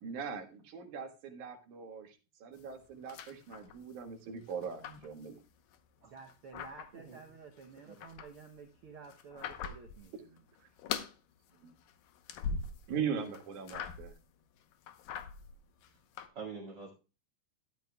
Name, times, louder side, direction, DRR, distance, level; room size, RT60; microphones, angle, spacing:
voice 1, 0.0-5.4 11.6-11.7 12.9-14.1, right 7 dB, 65° right, 5 dB, 2.8 m, -40 dB
sound 1, 2.6-4.1 4.4-5.8 6.2-7.2 7.6-10.1 10.4-11.2 11.5-13.0 13.2-14.2 14.6-16.3, left 6 dB, 90° left, 2.7 m, -42 dB
voice 2, 6.1-10.4, right 5 dB, 90° right, 3 dB, 1.2 m, -52 dB
voice 3, 16.3-16.9, right 5 dB, 40° right, -2 dB, 2.2 m, -45 dB
13.5 x 11.0 x 2.3 m, 0.32 s
omnidirectional pair, 3.8 m